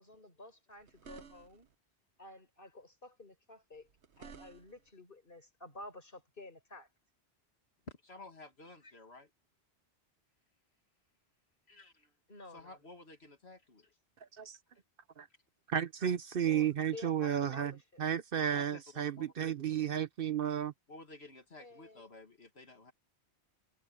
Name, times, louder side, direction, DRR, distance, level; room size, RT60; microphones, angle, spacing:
voice 1, 0.0-1.7 2.2-3.9 4.2-6.9 12.3-12.8 16.4-16.7 16.9-18.0 21.6-22.1, left 2 dB, 55° left, 5.4 m, -51 dB
sound 1, 0.8-1.7 3.7-4.9, right 6 dB, 80° right, 1.4 m, -54 dB
voice 2, 8.0-9.3 11.7-12.1 12.5-13.9 18.5-19.5 20.9-22.9, left 2 dB, 70° left, 2.4 m, -53 dB
voice 3, 15.7-17.7 18.0-20.7, right 9 dB, 60° right, 0.9 m, -33 dB
omnidirectional pair, 1.1 m